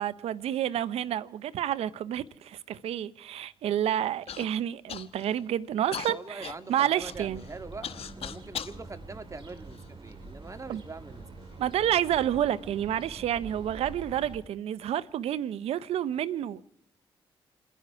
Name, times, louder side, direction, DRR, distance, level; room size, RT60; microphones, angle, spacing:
voice 1, 0.0-7.4 10.7-10.8 11.6-16.6, right 11 dB, 75° right, 0.7 m, -29 dB
Human voice / Cough, 4.3-4.5 4.9-5.4 5.9-8.8 9.5-10.3 11.1-11.2 11.9-12.2, left 8 dB, 65° left, 1.1 m, -40 dB
voice 2, 6.1-11.6, right 3 dB, 30° right, 1.8 m, -43 dB
sound 1, 7.0-14.4, right 2 dB, 55° right, 5.4 m, -46 dB
28.5 x 11.0 x 4.7 m
supercardioid pair, 50°, 11 cm